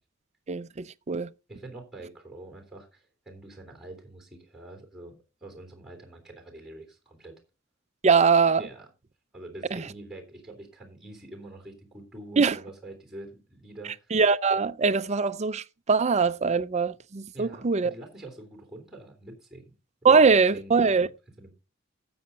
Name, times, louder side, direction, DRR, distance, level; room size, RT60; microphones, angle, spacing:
voice 1, 0.5-1.3 8.0-8.6 9.7-9.8 12.4-12.6 14.1-17.9 20.0-21.1, right 5 dB, 35° right, 0.5 m, -22 dB
voice 2, 1.5-5.1 5.4-7.3 8.6-8.8 9.3-14.1 17.3-19.7 20.0-21.1 21.4-21.5, right 2 dB, 5° right, 3.4 m, -45 dB
13.0 x 7.7 x 4.1 m
head